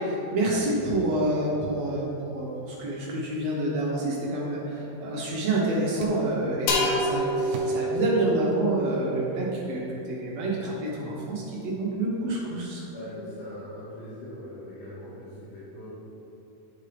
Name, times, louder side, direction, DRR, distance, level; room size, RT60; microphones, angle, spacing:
voice 1, 0.0-12.8, right 1 dB, 65° right, -5 dB, 1.7 m, -28 dB
sound 1, 6.0-6.5 7.5-9.0, right 3 dB, 80° right, 2.8 m, -42 dB
sound 2, 6.7-10.3, equal, 85° left, 2.8 m, -29 dB
voice 2, 12.9-16.0, left 1 dB, 60° left, -12 dB, 3.2 m, -41 dB
11.5 x 4.8 x 3.4 m, 2.9 s
omnidirectional pair, 4.2 m